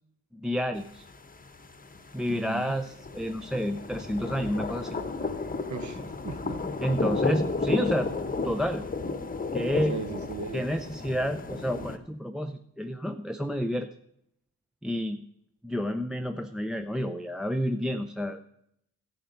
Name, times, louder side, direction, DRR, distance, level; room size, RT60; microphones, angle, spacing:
voice 1, 0.3-1.0 2.1-5.0 6.8-8.1 8.4-8.8 9.5-10.0 10.5-13.9 14.8-15.2 15.6-18.4, equal, ahead, 7 dB, 0.5 m, -30 dB
sound 1, 0.8-12.0, left 3 dB, 20° left, 1.0 m, -33 dB
voice 2, 2.3-2.7 5.7-6.6 9.9-10.6, right 5 dB, 45° right, 10 dB, 1.1 m, -37 dB
11.5 x 7.8 x 5.2 m, 0.76 s
hypercardioid pair, 45°, 40 cm